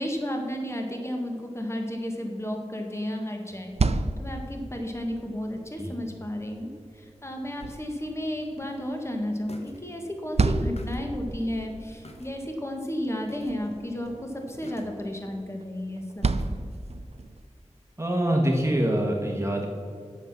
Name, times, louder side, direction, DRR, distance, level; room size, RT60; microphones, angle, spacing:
voice 1, 0.0-16.4, left 1 dB, 25° left, 2 dB, 1.5 m, -33 dB
sound 1, 3.5-17.5, right 3 dB, 60° right, 0.5 m, -33 dB
sound 2, 8.3-8.4 9.5-9.8 10.1-10.2 10.5-12.3 12.7-12.8 13.3-13.5 13.8-14.1 14.6-15.2 16.2-16.5 16.9-17.0, left 1 dB, 65° left, 1.2 m, -44 dB
voice 2, 18.0-19.7, right 1 dB, 25° right, 0 dB, 1.5 m, -25 dB
9.1 x 6.7 x 6.0 m, 2.2 s
wide cardioid pair, 55°, 12 cm